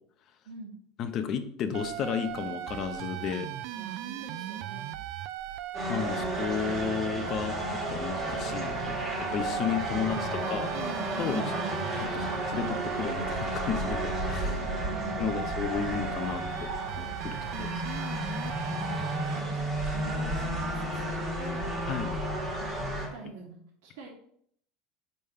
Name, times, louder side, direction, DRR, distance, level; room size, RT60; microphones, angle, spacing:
voice 1, 1.0-3.5 5.9-10.7 11.2-11.6 12.0-14.6 15.2-16.7 17.0-17.7 21.9-22.2, left 7 dB, 40° left, 8 dB, 0.6 m, -33 dB
sound 1, 1.7-19.4, right 12 dB, 60° right, 0.3 m, -38 dB
voice 2, 3.7-4.9 11.2-12.0 14.4-15.4 17.5-18.1 18.6-21.1 21.4-21.8 22.6-24.1, right 4 dB, 85° right, -1 dB, 1.7 m, -44 dB
sound 2, 5.7-23.1, equal, 20° right, 1.6 m, -33 dB
5.3 x 3.4 x 5.5 m, 0.64 s
supercardioid pair, 150°, 0 cm